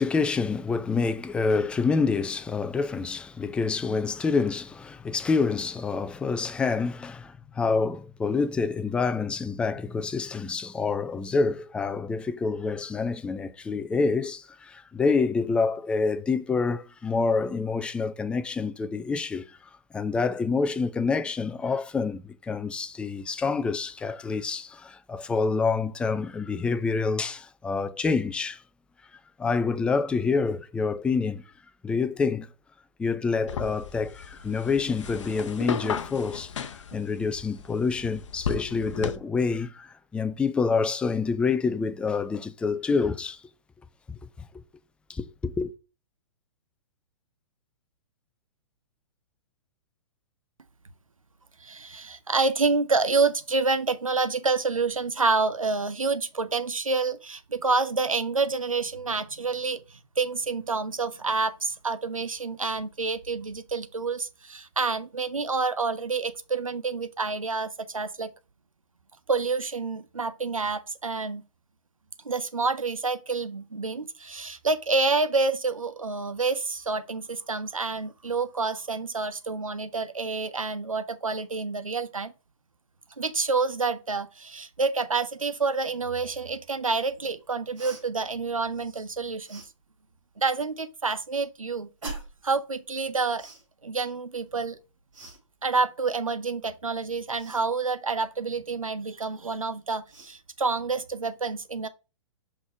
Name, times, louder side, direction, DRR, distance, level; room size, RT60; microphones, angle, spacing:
voice 1, 0.0-19.6 19.9-28.6 29.4-31.4 31.8-32.5 33.0-43.4 44.1-44.5 45.1-45.7, left 4 dB, 5° left, 0.3 m, -27 dB
sound 1, 33.5-39.2, left 6 dB, 65° left, 0.7 m, -35 dB
voice 2, 51.6-68.3 69.3-71.4 72.2-82.3 83.2-89.6 90.4-91.9 92.4-93.5 93.8-94.8 95.6-101.9, right 4 dB, 85° right, 0.7 m, -28 dB
Cough, 87.7-88.0 89.4-89.7 92.0-92.4 93.3-93.6 95.1-95.4 97.3-97.6 99.5-99.6 100.1-100.4, right 2 dB, 70° right, 3.3 m, -41 dB
5.2 x 4.1 x 4.4 m
figure-of-eight pair, 110°, 17 cm